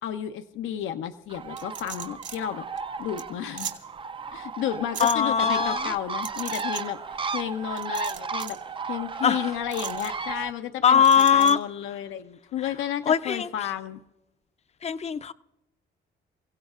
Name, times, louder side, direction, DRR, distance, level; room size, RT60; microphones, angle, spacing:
voice 1, 0.0-2.7 3.0-3.7 4.3-8.6 8.8-11.0 11.3-14.0, left 10 dB, 85° left, 0.7 m, -32 dB
Bird, 1.3-10.5, right 5 dB, 25° right, 0.4 m, -34 dB
sound 1, 1.6-2.4 2.8-2.9 3.2-3.3 3.6-3.7 4.9-5.1 6.2-6.8 7.8-8.6 9.7-10.1 11.0-11.5, right 8 dB, 65° right, 2.2 m, -36 dB
voice 2, 5.0-5.9 9.2-9.5 10.8-11.6 13.1-13.5 14.8-15.3, left 7 dB, 35° left, 0.5 m, -21 dB
29.0 x 16.5 x 2.4 m
cardioid pair, 90°, 20 cm